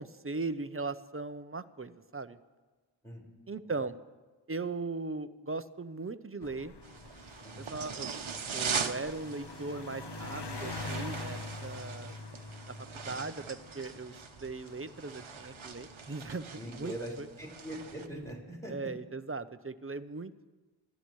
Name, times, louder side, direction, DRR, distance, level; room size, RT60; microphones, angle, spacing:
voice 1, 0.0-2.4 3.5-4.0 4.5-6.8 7.6-8.1 8.5-12.2 12.8-14.1 14.4-17.3 18.7-20.3, right 3 dB, 25° right, 12 dB, 0.7 m, -39 dB
sound 1, 6.4-17.1 17.9-18.3, left 3 dB, 55° left, 1.0 m, -45 dB
sound 2, 6.8-18.1, right 6 dB, 70° right, 1.0 m, -41 dB
voice 2, 7.4-8.0 16.6-18.9, right 1 dB, 5° left, -3 dB, 5.2 m, -42 dB
27.0 x 13.0 x 3.2 m, 1.3 s
wide cardioid pair, 45°, 49 cm